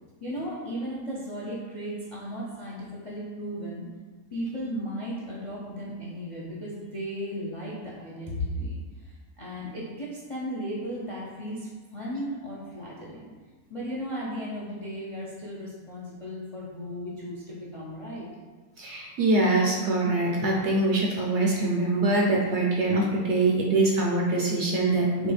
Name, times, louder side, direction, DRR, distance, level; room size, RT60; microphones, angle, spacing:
voice 1, 0.2-3.9 4.3-13.3 13.7-18.3, equal, 45° left, -6 dB, 0.4 m, -35 dB
voice 2, 18.8-25.3, right 2 dB, 60° right, -2 dB, 0.8 m, -24 dB
6.4 x 2.3 x 3.3 m, 1.4 s
omnidirectional pair, 1.6 m